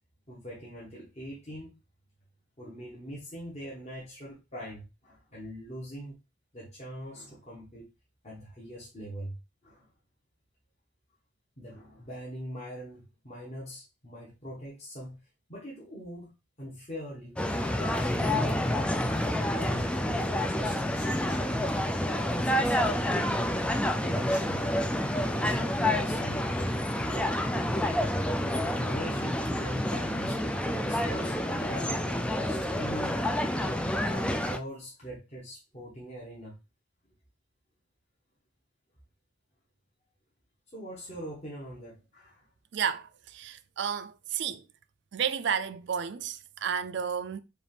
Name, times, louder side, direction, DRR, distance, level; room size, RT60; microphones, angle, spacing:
voice 1, 0.3-1.7 2.6-6.2 6.5-7.9 8.2-9.4 9.6-9.9 11.6-15.2 15.5-16.3 16.6-17.4 17.8-18.9 19.3-21.6 22.0-23.4 24.0-24.6 25.1-26.5 27.0-27.4 28.7-30.4 30.7-33.3 33.5-36.6 40.7-42.5, equal, 35° left, 1.2 m, -42 dB
sound 1, 17.4-34.6, left 1 dB, 5° left, 0.3 m, -28 dB
voice 2, 42.7-44.7 45.1-47.4, right 7 dB, 65° right, 0.4 m, -32 dB
5.1 x 2.5 x 3.4 m
head